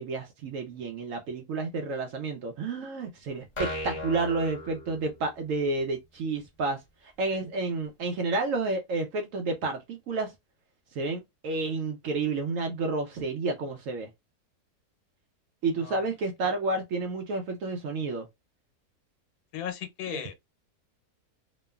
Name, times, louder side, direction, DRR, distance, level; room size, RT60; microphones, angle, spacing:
voice 1, 0.0-10.3 10.9-14.1 15.6-18.3 20.1-20.2, right 3 dB, 70° right, 0.8 m, -30 dB
sound 1, 3.6-5.5, left 1 dB, 50° left, 0.3 m, -36 dB
voice 2, 19.5-20.3, left 9 dB, 85° left, 1.2 m, -36 dB
3.0 x 2.1 x 2.2 m
omnidirectional pair, 1.6 m